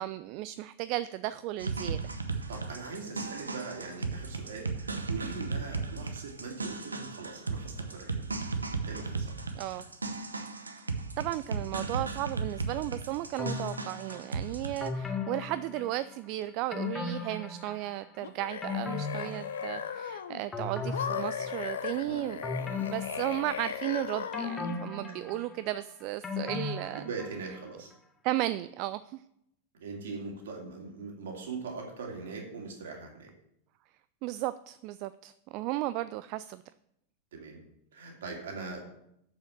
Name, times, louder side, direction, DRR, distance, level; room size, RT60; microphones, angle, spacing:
voice 1, 0.0-2.0 9.5-9.9 10.9-27.0 28.2-29.2 34.2-36.6, right 15 dB, 45° right, 14 dB, 0.3 m, -35 dB
sound 1, 1.6-14.9, right 4 dB, 75° right, 0.8 m, -36 dB
voice 2, 2.3-8.3 8.8-9.4 22.0-22.2 27.0-27.9 29.7-33.3 37.3-37.6 37.9-38.8, right 4 dB, 60° right, 1 dB, 2.5 m, -41 dB
sound 2, 13.4-14.2 14.8-16.3 16.7-18.0 18.4-20.1 20.5-21.9 22.4-23.9 24.3-27.6 27.9-28.0, left 4 dB, 15° left, 1.2 m, -37 dB
sound 3, 18.2-20.4 20.9-24.8, left 7 dB, 65° left, 0.6 m, -37 dB
7.1 x 6.3 x 7.3 m, 0.77 s
figure-of-eight pair, 90°, 0 cm